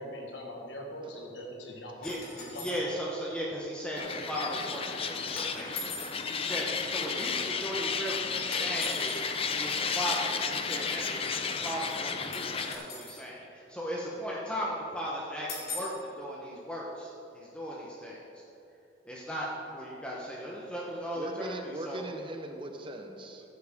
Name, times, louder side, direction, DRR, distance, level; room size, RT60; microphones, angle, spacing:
voice 1, 0.0-2.8 7.4-7.5 7.8-7.9, equal, 70° left, 0 dB, 1.5 m, -42 dB
sound 1, 2.0-2.8 5.4-6.2 8.5-9.2 12.3-13.3 15.5-16.0, left 3 dB, 55° left, 2.6 m, -40 dB
voice 2, 2.0-18.4 19.0-22.1, equal, 5° left, -4 dB, 1.0 m, -37 dB
sound 2, 4.0-12.8, left 5 dB, 30° left, 0.6 m, -33 dB
voice 3, 21.2-23.4, right 1 dB, 25° right, 4 dB, 0.9 m, -39 dB
14.5 x 8.2 x 3.6 m, 2.9 s
head